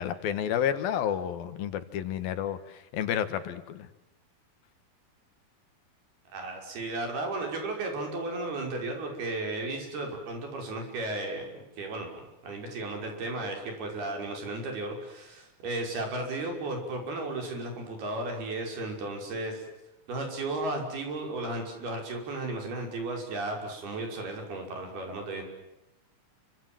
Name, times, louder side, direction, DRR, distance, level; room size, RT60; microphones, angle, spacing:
voice 1, 0.0-3.9, left 9 dB, 75° left, 11 dB, 3.3 m, -30 dB
voice 2, 6.3-19.6 20.1-25.4, right 2 dB, 80° right, 3 dB, 7.7 m, -34 dB
29.5 x 25.0 x 7.8 m, 0.90 s
omnidirectional pair, 4.4 m